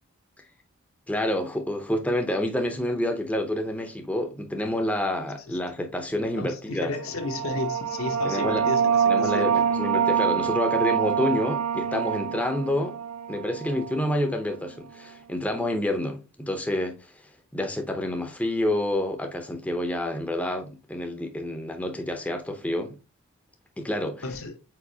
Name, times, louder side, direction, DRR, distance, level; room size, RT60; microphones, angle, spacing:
voice 1, 1.1-6.9 8.2-8.6 9.1-13.0 13.3-17.1 17.5-23.0 23.8-24.2, left 1 dB, 5° left, 0.5 m, -28 dB
voice 2, 6.4-9.5 24.2-24.6, left 3 dB, 65° left, 0.8 m, -32 dB
sound 1, 7.0-14.3, right 7 dB, 80° right, 0.6 m, -26 dB
4.7 x 4.2 x 2.7 m
head